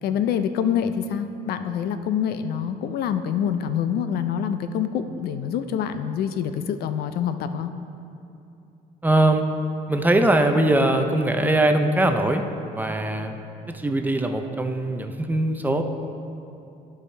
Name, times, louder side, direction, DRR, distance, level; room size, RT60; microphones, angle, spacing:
voice 1, 0.0-7.7, left 8 dB, 70° left, 10 dB, 0.5 m, -26 dB
voice 2, 9.0-9.5 9.9-13.4 13.7-15.8, right 1 dB, 10° right, 5 dB, 0.5 m, -21 dB
14.5 x 4.8 x 3.3 m, 2.7 s
cardioid pair, 110°, 17 cm